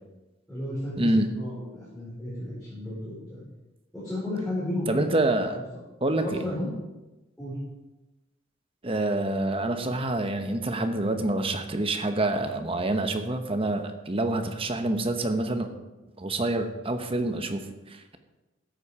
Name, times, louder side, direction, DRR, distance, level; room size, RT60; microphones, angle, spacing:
voice 1, 0.5-3.4 3.9-5.0 6.2-6.7 7.4-7.6, left 1 dB, 5° left, -11 dB, 4.5 m, -33 dB
voice 2, 4.9-5.6 6.0-6.4 8.8-15.7 16.2-18.2, right 2 dB, 30° right, 7 dB, 1.0 m, -27 dB
13.5 x 8.4 x 4.8 m, 1.1 s
head